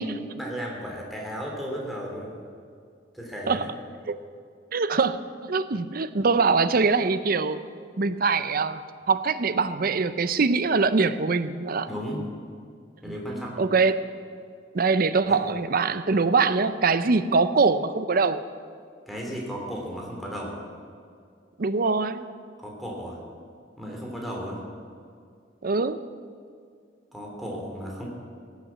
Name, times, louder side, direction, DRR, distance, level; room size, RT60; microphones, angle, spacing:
voice 1, 0.3-2.4 3.1-3.7 11.9-12.2 13.0-13.7 15.3-15.4 19.1-20.6 22.6-23.2 23.8-24.6 27.1-28.1, equal, ahead, -2 dB, 3.0 m, -34 dB
voice 2, 4.7-5.2 5.4-7.6 8.0-8.8 9.1-11.9 13.1-13.2 13.6-14.0 14.7-18.4 21.6-22.2 25.6-26.0, right 4 dB, 50° right, 13 dB, 0.6 m, -23 dB
17.0 x 8.2 x 7.4 m, 2.2 s
head